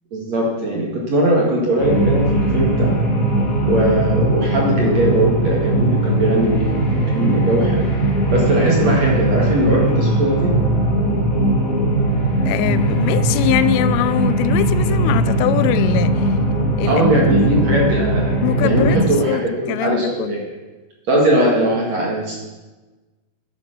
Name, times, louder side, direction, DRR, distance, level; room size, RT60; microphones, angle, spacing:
voice 1, 0.1-3.0 3.6-7.8 8.3-10.5 16.8-20.4 21.1-22.4, right 1 dB, 55° right, -3 dB, 1.9 m, -20 dB
sound 1, 1.8-19.1, right 1 dB, 60° left, 0.8 m, -19 dB
voice 2, 12.5-16.4 16.8-17.5 18.4-19.4 19.7-20.5, left 13 dB, 85° left, 14 dB, 3.0 m, -22 dB
11.0 x 10.5 x 6.7 m, 1.2 s
omnidirectional pair, 5.8 m